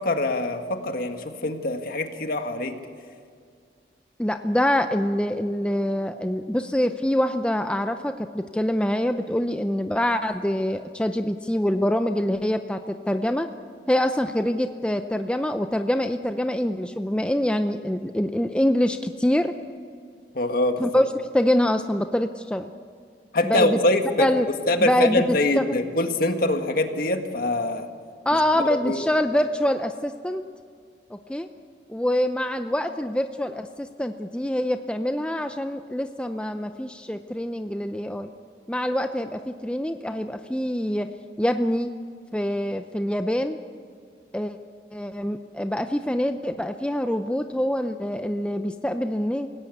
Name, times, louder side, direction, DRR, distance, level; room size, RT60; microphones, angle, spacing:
voice 1, 0.0-2.8 20.3-20.9 23.3-24.3 24.7-27.9 28.8-29.0, left 2 dB, 55° left, 6 dB, 1.8 m, -24 dB
voice 2, 4.2-13.5 13.9-19.5 20.8-21.1 21.3-22.7 23.4-23.8 24.2-24.5 24.8-25.8 28.3-30.4 31.1-31.5 31.9-38.3 38.7-41.1 41.4-41.9 42.3-43.6 44.3-44.6 44.9-49.5, left 1 dB, 5° left, 7 dB, 0.6 m, -25 dB
27.5 x 17.5 x 8.5 m, 2.2 s
head